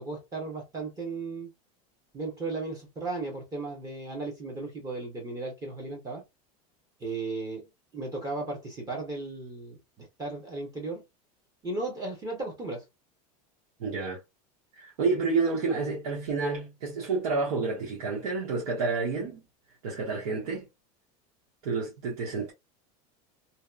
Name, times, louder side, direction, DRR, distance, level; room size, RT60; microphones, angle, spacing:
voice 1, 0.0-1.5 2.1-6.2 7.0-11.0 11.6-12.8, right 3 dB, 20° right, 0.9 m, -35 dB
voice 2, 13.8-14.2 14.7-19.4 19.8-20.7 21.6-22.5, right 4 dB, 85° right, 1.1 m, -29 dB
2.8 x 2.2 x 2.3 m
supercardioid pair, 140°, 19 cm